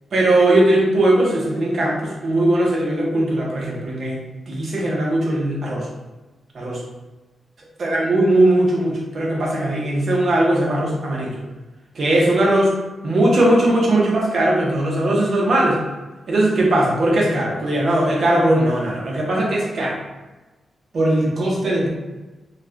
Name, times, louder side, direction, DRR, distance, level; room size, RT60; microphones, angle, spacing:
voice 1, 0.1-5.9 6.5-6.8 7.8-11.4 11.9-12.7 13.0-15.8 16.3-20.0 20.9-21.9, right 1 dB, 60° right, -3 dB, 0.8 m, -19 dB
2.4 x 2.4 x 3.4 m, 1.1 s
cardioid pair, 70°, 0 cm